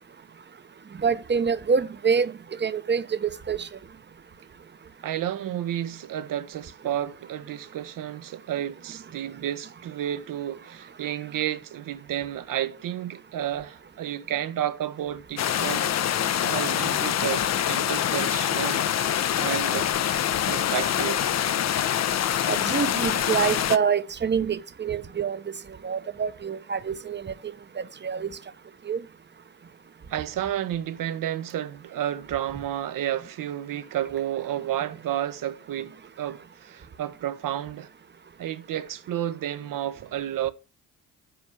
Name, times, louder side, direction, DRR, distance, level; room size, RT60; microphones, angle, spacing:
voice 1, 1.0-2.3 2.6-3.7 22.5-25.5 25.8-27.3 27.8-28.3 28.9-29.0, right 6 dB, 30° right, 1.0 m, -26 dB
voice 2, 5.0-15.9 16.4-19.0 19.4-19.9 20.5-21.3 30.1-37.9 38.4-40.5, right 11 dB, 60° right, 1.1 m, -31 dB
sound 1, 15.4-23.8, left 10 dB, 45° left, 0.7 m, -25 dB
8.0 x 4.6 x 6.8 m
hypercardioid pair, 55°, 38 cm